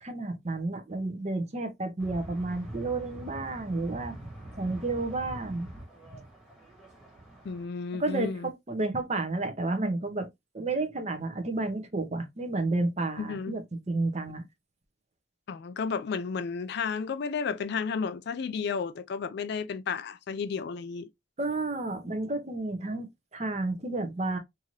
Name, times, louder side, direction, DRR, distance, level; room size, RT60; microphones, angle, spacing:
voice 1, 0.0-4.2 4.6-5.7 6.1-6.2 8.0-10.3 10.5-14.4 21.4-24.4, right 2 dB, 35° right, 0.6 m, -31 dB
sound 1, 2.0-7.6, right 1 dB, ahead, 1.1 m, -44 dB
voice 2, 7.4-8.5 13.2-13.6 15.5-21.1, left 5 dB, 55° left, 0.3 m, -32 dB
2.7 x 2.5 x 2.9 m
head